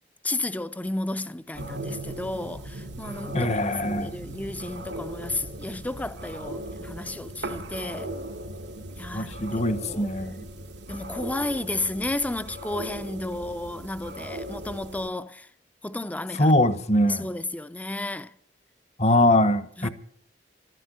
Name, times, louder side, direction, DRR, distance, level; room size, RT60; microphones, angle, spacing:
voice 1, 0.2-3.6 3.8-8.1 9.0-9.6 9.9-10.1 10.9-15.5 15.8-16.5 17.0-18.3 19.8-19.9, left 2 dB, 10° left, 0.5 m, -32 dB
sound 1, 1.5-15.1, right 1 dB, 85° right, 1.3 m, -38 dB
voice 2, 3.3-4.2 9.1-10.5 16.4-17.3 19.0-19.9, left 1 dB, 40° left, 0.9 m, -22 dB
13.0 x 11.0 x 7.8 m
head